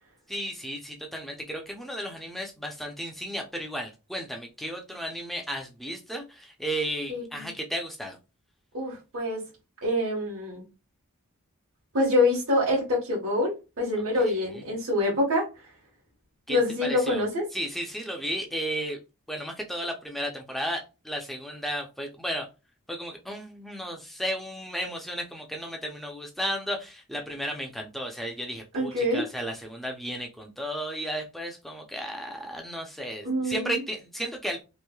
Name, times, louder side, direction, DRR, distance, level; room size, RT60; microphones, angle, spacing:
voice 1, 0.3-8.2 14.2-14.7 16.5-17.3 17.5-19.0 19.3-22.5 22.9-34.6, equal, ahead, 0.5 m, -34 dB
voice 2, 7.1-7.5 8.7-9.4 9.8-10.6 11.9-15.5 16.5-17.4 28.7-29.2 33.2-33.8, left 1 dB, 70° right, 1.2 m, -26 dB
3.1 x 2.6 x 2.2 m
head